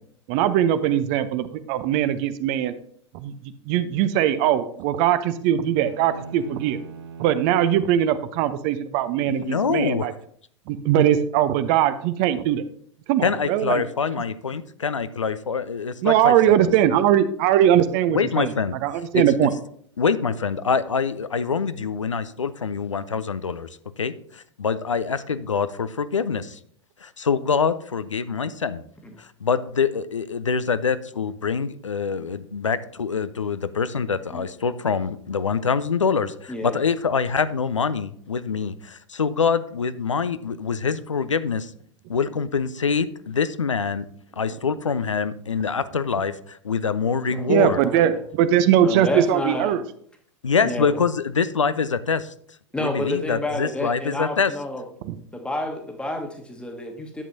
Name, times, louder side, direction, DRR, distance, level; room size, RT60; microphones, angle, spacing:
voice 1, 0.3-2.7 3.1-6.8 7.2-10.1 10.7-12.6 13.1-13.8 16.0-18.5 18.8-19.5 47.5-49.8 55.0-55.1, right 10 dB, 40° right, 12 dB, 0.6 m, -21 dB
sound 1, 5.8-8.0, right 5 dB, 60° right, 1.1 m, -40 dB
voice 2, 9.3-10.1 13.2-16.3 16.6-16.7 18.1-18.8 19.1-19.2 20.0-23.7 24.0-26.6 27.0-28.8 29.2-41.7 42.1-44.0 44.4-47.8 50.4-52.3 52.8-54.5, left 5 dB, 80° left, 14 dB, 0.5 m, -25 dB
voice 3, 36.5-36.8 47.3-48.2 48.8-49.8 50.6-51.0 52.7-54.8 55.3-57.2, left 1 dB, 5° left, 3 dB, 1.3 m, -30 dB
11.0 x 7.6 x 2.7 m, 0.62 s
figure-of-eight pair, 95°, 16 cm